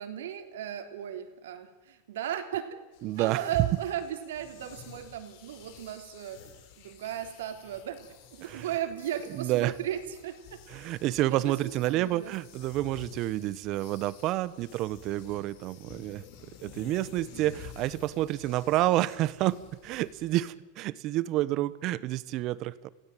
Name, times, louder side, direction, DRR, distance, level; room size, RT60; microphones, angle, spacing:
voice 1, 0.0-2.8 3.2-6.5 6.8-10.6 11.3-12.3, right 10 dB, 85° right, 7 dB, 3.4 m, -36 dB
sound 1, 2.9-20.5, left 8 dB, 60° left, 4.4 m, -51 dB
voice 2, 3.0-3.4 8.4-8.7 9.3-9.7 10.7-16.2 16.6-22.9, right 15 dB, 45° right, 18 dB, 1.1 m, -29 dB
29.0 x 16.5 x 9.1 m, 1.1 s
supercardioid pair, 140°, 0 cm